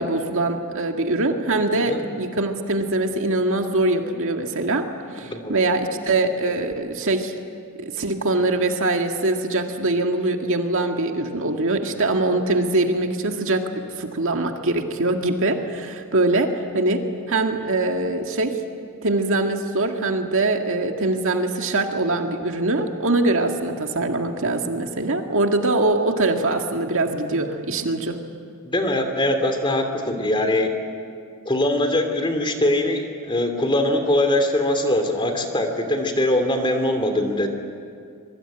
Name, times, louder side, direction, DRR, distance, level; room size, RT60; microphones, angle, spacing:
voice 1, 0.0-4.9 5.1-7.3 7.8-13.7 14.0-18.6 19.0-28.2, right 2 dB, 65° right, 4 dB, 2.1 m, -23 dB
voice 2, 5.2-5.6 28.6-30.7 31.4-37.5, left 1 dB, 25° left, 5 dB, 2.9 m, -22 dB
25.5 x 23.5 x 9.0 m, 2.3 s
head